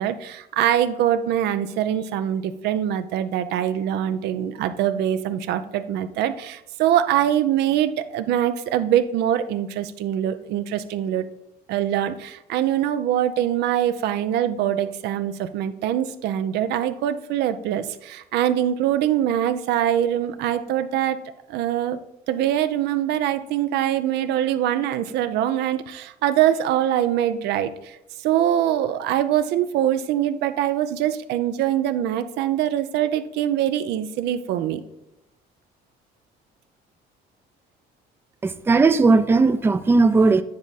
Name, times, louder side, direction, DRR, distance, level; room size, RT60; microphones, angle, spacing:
voice 1, 0.0-11.3 11.7-21.2 21.5-22.0 22.3-34.8, right 11 dB, 80° right, 0.5 m, -23 dB
voice 2, 38.4-40.4, right 3 dB, 15° right, 0.4 m, -17 dB
9.5 x 3.6 x 4.0 m
cardioid pair, 110°, 17 cm